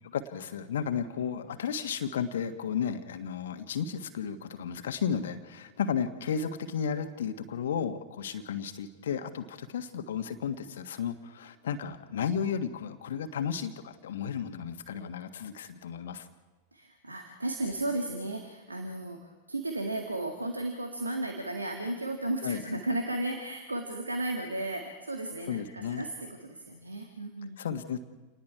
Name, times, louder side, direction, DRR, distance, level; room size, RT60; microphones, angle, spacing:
voice 1, 0.0-16.3 22.4-22.6 25.5-26.1 27.6-28.0, left 7 dB, 60° left, 8 dB, 1.6 m, -33 dB
voice 2, 16.7-27.6, right 2 dB, 80° right, 3 dB, 2.1 m, -34 dB
29.0 x 20.0 x 4.7 m, 1.2 s
figure-of-eight pair, 90°, 0 cm